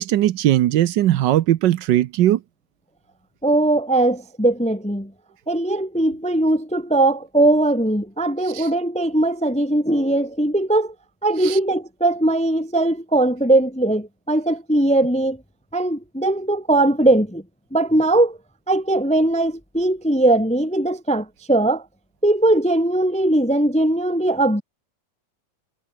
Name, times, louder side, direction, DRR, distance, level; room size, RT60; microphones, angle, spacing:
voice 1, 0.0-2.4 8.5-8.7 11.4-11.6, right 13 dB, 70° right, 1.3 m, -19 dB
voice 2, 3.4-5.1 5.5-10.9 11.2-15.4 15.7-17.4 17.7-18.4 18.7-21.8 22.2-24.6, right 1 dB, 5° left, 0.6 m, -19 dB
omnidirectional pair, 2.1 m